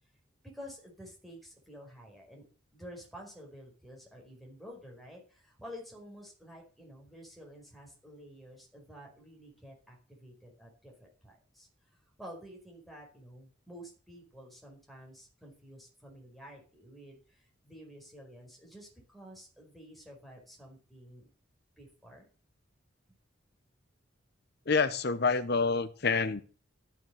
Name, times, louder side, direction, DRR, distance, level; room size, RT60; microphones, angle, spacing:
voice 1, 0.4-2.4 2.7-11.7 12.2-21.3 21.8-22.3, equal, ahead, 5.0 m, -50 dB
voice 2, 24.7-26.4, left 4 dB, 55° left, 0.9 m, -27 dB
13.5 x 7.5 x 7.7 m
head